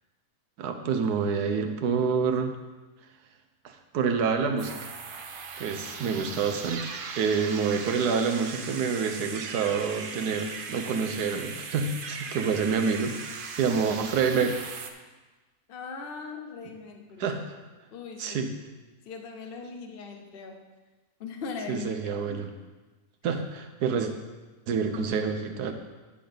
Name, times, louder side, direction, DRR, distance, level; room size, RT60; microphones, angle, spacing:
voice 1, 0.6-2.6 3.6-4.9 5.6-13.3 13.6-14.8 17.2-17.6 18.2-18.5 21.7-22.5 23.2-24.1 24.7-25.7, right 5 dB, 85° right, 6 dB, 1.4 m, -27 dB
sound 1, 4.6-14.9, right 5 dB, 55° right, 0.6 m, -39 dB
voice 2, 15.7-17.3 17.9-18.4 19.0-20.6 21.2-22.0 22.3-22.4, left 4 dB, 45° left, 4 dB, 0.9 m, -39 dB
10.5 x 3.9 x 6.7 m, 1.2 s
omnidirectional pair, 1.6 m